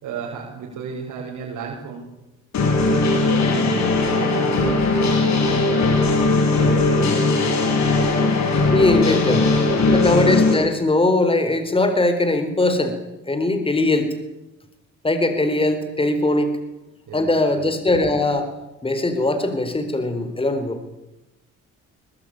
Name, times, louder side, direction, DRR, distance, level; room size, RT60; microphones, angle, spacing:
voice 1, 0.0-2.2 2.7-2.8 3.1-7.5 7.9-8.3 9.2-9.5 9.8-10.0 17.1-17.6, right 6 dB, 80° right, -3 dB, 6.4 m, -34 dB
sound 1, 2.5-10.5, left 3 dB, 65° left, 7.4 m, -19 dB
voice 2, 8.7-9.5 9.9-13.0 13.3-14.1 15.0-16.5 17.1-18.5 18.8-20.8, left 2 dB, 20° left, 8 dB, 4.2 m, -20 dB
22.5 x 21.0 x 8.9 m, 0.95 s
cardioid pair, 90°, 30 cm